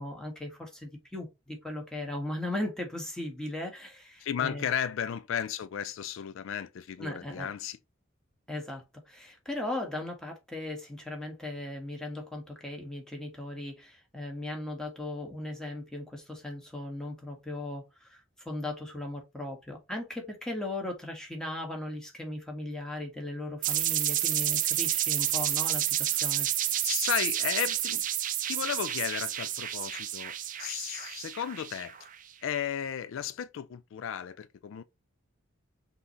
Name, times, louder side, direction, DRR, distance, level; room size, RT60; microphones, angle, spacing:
voice 1, 0.0-4.7 7.0-7.5 8.5-26.5, left 1 dB, 5° left, 1.3 m, -37 dB
voice 2, 4.2-7.8 26.1-26.3 26.8-28.1 28.5-32.1 32.4-34.8, left 9 dB, 70° left, 0.3 m, -34 dB
sound 1, 23.6-32.1, right 12 dB, 40° right, 0.4 m, -30 dB
5.7 x 2.8 x 3.1 m
head